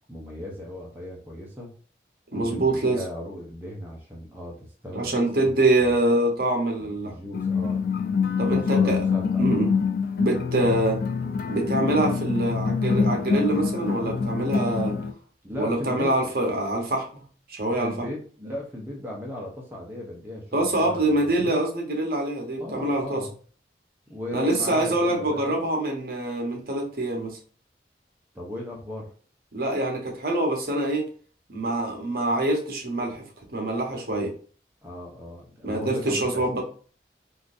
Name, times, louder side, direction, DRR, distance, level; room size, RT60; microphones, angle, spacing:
voice 1, 0.1-1.7 2.4-5.9 6.8-7.9 8.4-9.6 15.4-16.1 17.8-21.0 21.4-21.6 22.6-23.3 24.1-25.7 28.3-29.1 34.8-36.4, left 1 dB, 10° right, -3 dB, 0.6 m, -37 dB
voice 2, 2.3-3.0 4.9-7.1 8.4-9.0 9.4-9.7 10.2-11.0 11.5-15.0 15.6-17.2 17.5-18.1 20.5-23.3 24.3-27.4 29.5-31.0 31.5-33.2 33.5-34.3 35.6-36.6, right 1 dB, 55° right, 1 dB, 0.9 m, -25 dB
sound 1, 7.3-15.1, left 5 dB, 55° left, 0.3 m, -25 dB
3.7 x 2.5 x 2.4 m, 0.42 s
head